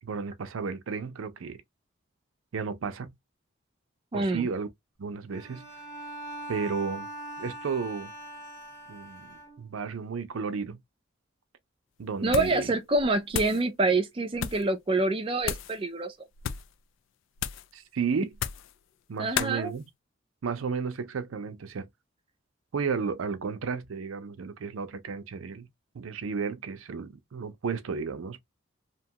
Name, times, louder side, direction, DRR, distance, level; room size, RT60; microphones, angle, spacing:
voice 1, 0.0-1.6 2.5-3.1 4.1-4.7 5.0-5.7 6.5-7.1 7.4-8.1 8.9-10.8 12.0-12.7 17.7-18.3 19.1-19.9 20.4-21.9 22.7-25.7 25.9-28.4, right 5 dB, 85° right, 0.5 m, -33 dB
voice 2, 4.1-4.5 12.2-16.1 19.2-19.7, right 2 dB, 25° right, 0.4 m, -26 dB
Bowed string instrument, 5.3-9.9, right 1 dB, 35° left, 0.9 m, -42 dB
sound 1, 12.3-12.7 12.9-13.6 14.3-14.7 15.4-15.8 16.3-16.7 17.4-17.7 18.3-18.7 19.3-19.6, left 9 dB, 70° left, 0.3 m, -33 dB
2.8 x 2.2 x 2.7 m
head